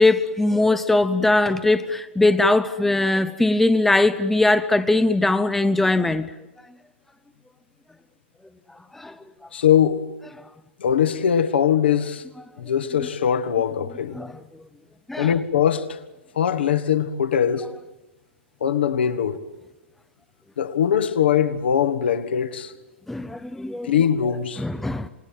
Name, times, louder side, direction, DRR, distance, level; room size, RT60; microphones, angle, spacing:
voice 1, 0.0-6.3 8.9-9.1 14.1-14.3 15.1-15.3 23.1-23.9 24.6-25.1, left 2 dB, 5° left, 0.8 m, -20 dB
voice 2, 9.5-10.0 10.8-12.2 12.6-14.2 15.2-16.0 16.4-17.6 18.6-19.4 20.6-22.7 23.8-24.6, left 8 dB, 60° left, 1.9 m, -21 dB
28.0 x 21.0 x 9.1 m
figure-of-eight pair, 105°, 6 cm